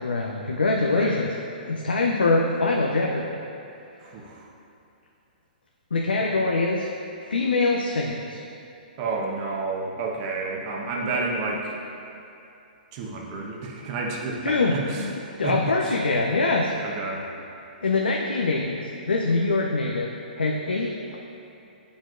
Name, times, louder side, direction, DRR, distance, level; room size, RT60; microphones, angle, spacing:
voice 1, 0.0-1.3 1.6-3.4 5.9-6.9 7.2-8.4 14.4-15.1 15.4-16.7 17.8-20.1 20.4-21.2, left 3 dB, 85° left, -1 dB, 0.5 m, -24 dB
voice 2, 4.0-4.5 6.2-6.5 9.0-11.8 12.9-15.1 15.4-15.5 16.8-17.3, right 3 dB, 40° right, -1 dB, 1.0 m, -30 dB
8.8 x 5.2 x 2.5 m, 2.7 s
hypercardioid pair, 125°, 5 cm